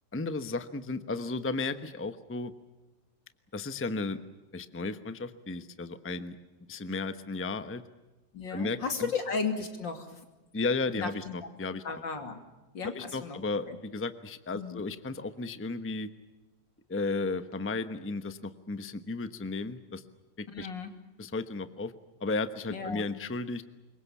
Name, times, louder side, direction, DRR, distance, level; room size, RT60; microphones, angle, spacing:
voice 1, 0.1-2.5 3.5-4.2 4.5-6.4 6.7-7.8 8.5-9.1 10.5-11.8 12.8-16.1 16.9-20.0 20.4-20.7 21.2-21.9 22.2-23.7, left 3 dB, 10° left, 11 dB, 0.8 m, -34 dB
voice 2, 8.3-10.2 10.9-11.5 11.8-12.4 12.7-13.4 13.7-13.8 14.5-14.8 20.5-20.9 22.7-23.1, left 5 dB, 85° left, 6 dB, 3.5 m, -35 dB
26.0 x 22.5 x 7.2 m, 1.1 s
omnidirectional pair, 2.0 m